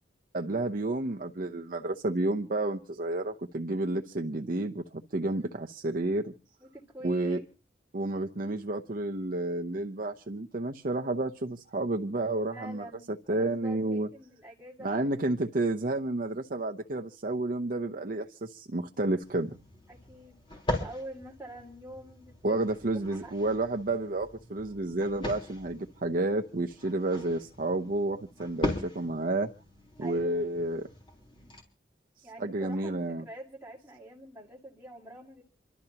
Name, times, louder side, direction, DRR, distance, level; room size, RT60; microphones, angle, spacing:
voice 1, 0.3-6.3 7.0-7.4 7.9-12.8 13.3-14.1 14.8-19.6 22.4-29.5 30.0-30.9 32.4-33.2, right 2 dB, 50° right, 0.8 m, -30 dB
voice 2, 5.2-5.5 6.6-7.4 12.5-15.1 19.9-20.4 20.8-22.6 22.9-23.4 30.0-30.5 32.2-35.4, right 1 dB, 10° right, 2.2 m, -46 dB
sound 1, 19.2-31.6, left 1 dB, 30° left, 3.9 m, -40 dB
28.0 x 12.5 x 2.9 m
head